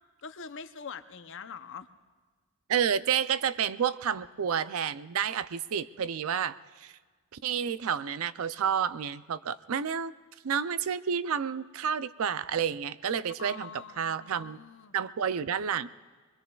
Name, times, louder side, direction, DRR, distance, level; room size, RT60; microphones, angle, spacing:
voice 1, 0.2-1.9 13.4-15.0, left 6 dB, 55° left, 10 dB, 0.7 m, -44 dB
voice 2, 2.7-6.9 7.4-10.1 10.4-13.7 14.0-14.6 14.9-15.9, right 7 dB, 70° right, 15 dB, 0.4 m, -30 dB
26.5 x 21.5 x 2.4 m, 1.4 s
head